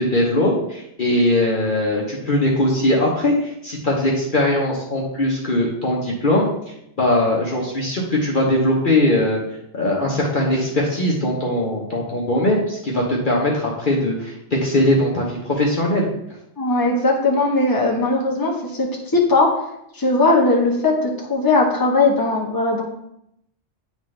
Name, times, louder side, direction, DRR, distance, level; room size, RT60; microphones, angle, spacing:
voice 1, 0.0-6.5 7.0-9.4 9.7-16.1, left 1 dB, 45° left, -3 dB, 1.1 m, -20 dB
voice 2, 16.6-19.5 19.9-22.8, left 2 dB, 20° left, -2 dB, 1.1 m, -19 dB
9.3 x 3.9 x 3.3 m, 0.80 s
omnidirectional pair, 1.3 m